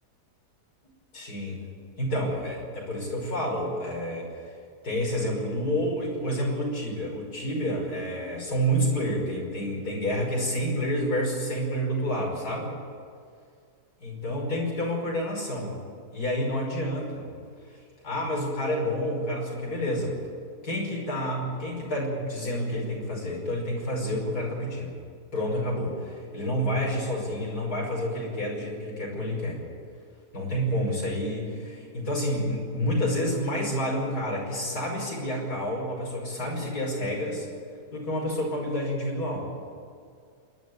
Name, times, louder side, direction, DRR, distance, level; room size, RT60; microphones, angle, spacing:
voice 1, 1.1-1.7 2.0-4.3 4.8-12.7 14.0-15.8 16.1-17.3 17.7-17.8 18.0-20.2 20.6-24.9 25.3-29.6 30.3-37.5 37.9-39.5, equal, 70° left, -2 dB, 6.1 m, -29 dB
27.0 x 11.0 x 9.3 m, 2.2 s
omnidirectional pair, 1.7 m